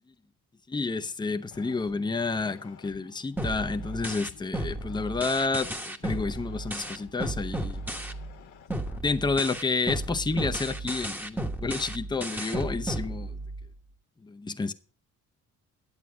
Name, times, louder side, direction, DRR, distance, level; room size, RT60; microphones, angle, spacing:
voice 1, 0.7-8.0 9.0-13.4 14.2-14.7, left 4 dB, 15° left, 0.7 m, -30 dB
sound 1, 1.4-9.0, left 8 dB, 85° left, 1.4 m, -52 dB
sound 2, 3.4-8.4 8.7-13.7, right 1 dB, 5° right, 1.1 m, -34 dB
9.7 x 8.1 x 6.1 m
cardioid pair, 90°, 30 cm